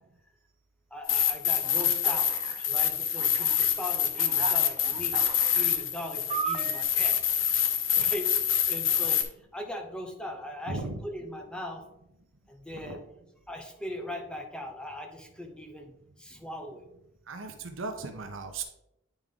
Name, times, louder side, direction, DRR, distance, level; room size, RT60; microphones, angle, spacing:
voice 1, 0.9-2.3 2.7-5.2 5.5-7.2 7.6-8.3 8.7-9.2 9.5-10.8 11.0-11.8 12.5-13.0 13.5-16.9, left 1 dB, 5° left, 2 dB, 0.8 m, -39 dB
sound 1, 1.1-9.2, left 9 dB, 75° left, 0.7 m, -26 dB
Alarm, 1.6-2.7 3.2-3.7 4.1-5.8 6.3-6.8, right 6 dB, 30° right, 0.3 m, -36 dB
voice 2, 10.7-11.0 12.7-13.0 17.3-18.6, right 3 dB, 80° right, 5 dB, 0.9 m, -37 dB
9.4 x 3.6 x 3.7 m, 0.83 s
head